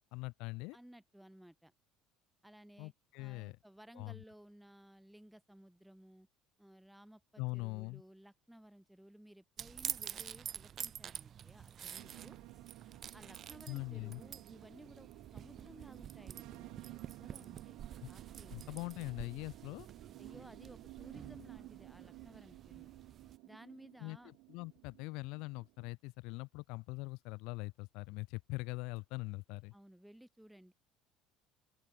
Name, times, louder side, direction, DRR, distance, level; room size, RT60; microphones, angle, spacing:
voice 1, 0.0-0.8 2.8-3.6 3.9-4.2 7.4-8.0 13.7-14.2 18.0-18.1 18.5-19.9 24.0-29.7, left 25 dB, 70° left, 0.4 m, -42 dB
voice 2, 0.7-1.7 2.4-2.9 3.2-6.3 6.6-12.4 13.1-17.8 18.1-18.6 20.2-22.9 23.4-24.3 29.7-30.7, right 1 dB, ahead, 3.8 m, -58 dB
sound 1, 9.6-23.4, right 9 dB, 30° right, 0.6 m, -48 dB
sound 2, 12.0-25.9, right 25 dB, 70° right, 2.1 m, -54 dB
open air
cardioid pair, 160°, 0 cm